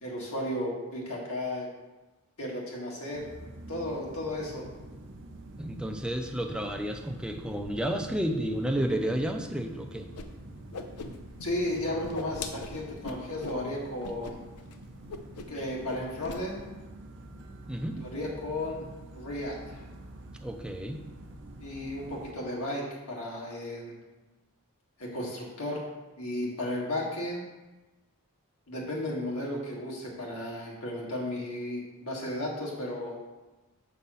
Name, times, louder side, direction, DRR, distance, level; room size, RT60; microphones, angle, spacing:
voice 1, 0.0-1.7 2.4-3.3 3.7-4.7 11.4-14.4 15.5-16.6 17.9-18.8 19.1-19.8 21.6-24.0 25.0-25.8 26.2-27.4 28.7-33.1, left 1 dB, 70° left, -3 dB, 1.9 m, -34 dB
sound 1, 3.1-22.3, right 1 dB, 55° right, 0.7 m, -46 dB
voice 2, 5.6-10.1 17.7-18.0 20.4-21.1, right 1 dB, 5° right, 3 dB, 0.5 m, -31 dB
Whoosh swoosh swish, 10.1-10.3 10.5-11.5 11.7-13.6 14.0-14.3 14.6-14.7 15.1-15.6 15.9-16.4, left 4 dB, 85° left, 0.6 m, -40 dB
7.3 x 3.9 x 5.5 m, 1.1 s
head